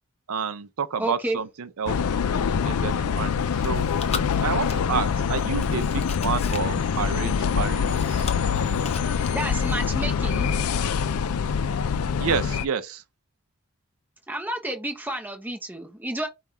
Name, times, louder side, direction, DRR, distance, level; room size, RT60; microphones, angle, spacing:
voice 1, 0.3-2.0 2.3-3.8 4.4-8.3 12.2-13.0, right 6 dB, 80° right, 0.5 m, -30 dB
voice 2, 1.0-1.4 9.3-10.5 14.3-16.3, right 1 dB, 10° right, 0.7 m, -30 dB
sound 1, 1.9-12.6, left 6 dB, 85° left, 0.4 m, -25 dB
Chewing mastication, 3.2-9.9, left 5 dB, 30° left, 0.5 m, -40 dB
5.3 x 2.4 x 4.2 m
head